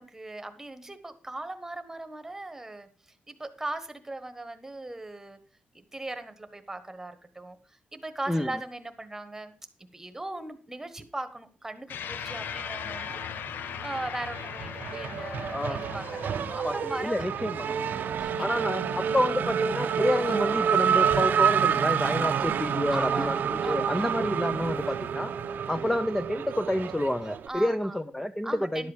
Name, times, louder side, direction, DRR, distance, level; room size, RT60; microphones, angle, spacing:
voice 1, 0.0-5.4 5.7-9.5 9.9-13.5 13.8-17.2 17.6-18.3 22.2-22.4 22.9-24.1 25.8-26.1 27.5-28.0 28.4-28.9, right 2 dB, 10° right, 10 dB, 1.2 m, -39 dB
sound 1, 11.9-20.6, left 8 dB, 80° left, 0.5 m, -40 dB
Race car auto racing / Accelerating revving vroom, 12.5-13.5 13.8-27.5, right 7 dB, 65° right, 0.6 m, -28 dB
voice 2, 17.0-17.7 18.4-23.3 23.7-25.3 25.7-28.9, left 1 dB, 5° left, 10 dB, 0.5 m, -29 dB
sound 2, 21.1-24.8, left 1 dB, 40° left, 5.0 m, -52 dB
11.5 x 7.7 x 5.0 m, 0.39 s
cardioid pair, 115°, 3 cm